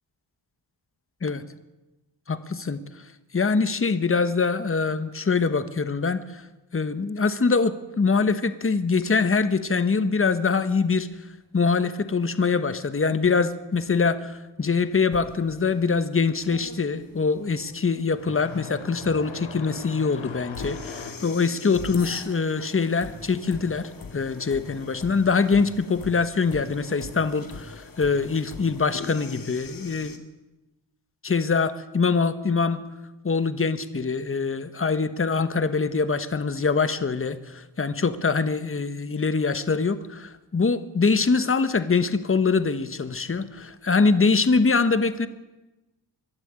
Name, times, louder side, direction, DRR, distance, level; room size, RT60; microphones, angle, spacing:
voice 1, 2.3-2.8 3.3-6.4 6.7-11.1 11.5-30.2 31.2-32.8 33.2-45.3, left 4 dB, 30° left, 12 dB, 1.3 m, -24 dB
sound 1, 15.1-30.2, left 4 dB, 45° left, 2.3 m, -42 dB
sound 2, 16.3-24.5 24.8-25.9 26.8-26.9 27.8-27.9 29.6-29.7, left 5 dB, 80° left, 3.1 m, -42 dB
24.0 x 12.0 x 8.9 m, 1.0 s
wide cardioid pair, 120°, 46 cm